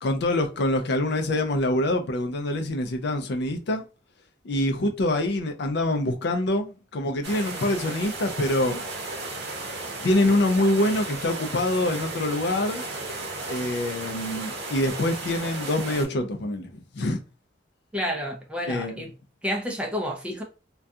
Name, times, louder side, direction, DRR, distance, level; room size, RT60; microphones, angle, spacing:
voice 1, 0.0-3.8 4.4-8.8 10.0-12.8 13.5-17.2 18.7-19.0, left 1 dB, 60° left, 0.4 m, -25 dB
sound 1, 7.2-16.0, right 2 dB, 60° right, 0.7 m, -34 dB
voice 2, 17.9-19.1 19.4-20.4, equal, 5° right, 0.4 m, -30 dB
2.3 x 2.2 x 2.6 m
head